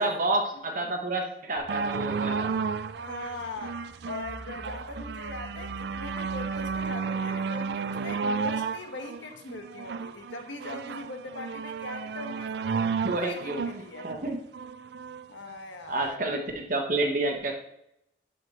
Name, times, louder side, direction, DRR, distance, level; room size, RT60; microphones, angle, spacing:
voice 1, 0.0-2.5 13.0-14.4 15.9-17.5, right 2 dB, 45° right, 2 dB, 1.1 m, -29 dB
sound 1, 1.6-6.9, left 1 dB, 15° left, 1.3 m, -47 dB
sound 2, 1.7-15.2 16.0-16.1, right 5 dB, 60° right, 0.3 m, -33 dB
voice 2, 3.0-12.8 13.2-14.1 15.3-16.2, left 2 dB, 80° left, 4 dB, 1.1 m, -40 dB
11.0 x 4.8 x 2.9 m, 0.81 s
head